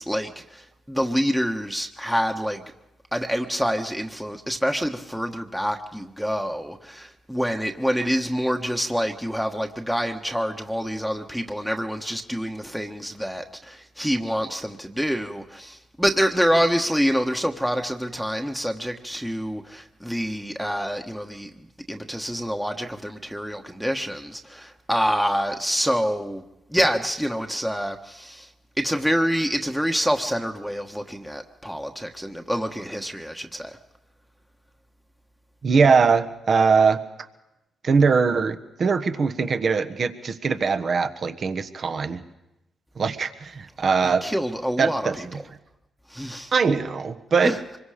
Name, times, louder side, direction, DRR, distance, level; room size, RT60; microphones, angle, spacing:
voice 1, 0.0-2.6 3.1-26.4 26.7-28.5 28.8-33.8 44.0-45.2 46.1-46.5 47.4-47.6, equal, ahead, 3 dB, 1.3 m, -26 dB
voice 2, 35.6-37.0 37.8-42.2 43.0-44.2 44.8-45.2 46.5-47.6, right 5 dB, 55° right, 8 dB, 1.3 m, -21 dB
25.0 x 22.5 x 5.0 m, 0.92 s
supercardioid pair, 55°, 0 cm